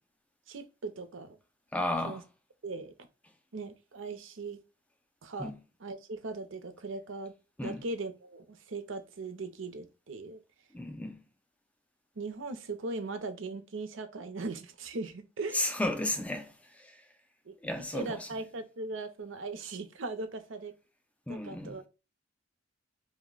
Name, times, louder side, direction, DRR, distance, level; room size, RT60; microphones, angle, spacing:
voice 1, 0.5-1.4 2.0-2.2 2.6-2.9 3.5-4.6 5.2-5.5 5.8-7.3 7.6-10.4 12.2-15.7 17.5-20.7 21.3-21.8, right 3 dB, 70° right, 0.6 m, -39 dB
voice 2, 1.7-2.2 5.4-5.6 7.6-7.8 10.7-11.2 15.5-17.0 17.6-18.3 21.3-21.8, left 1 dB, 5° left, 0.3 m, -33 dB
2.6 x 2.1 x 3.8 m
head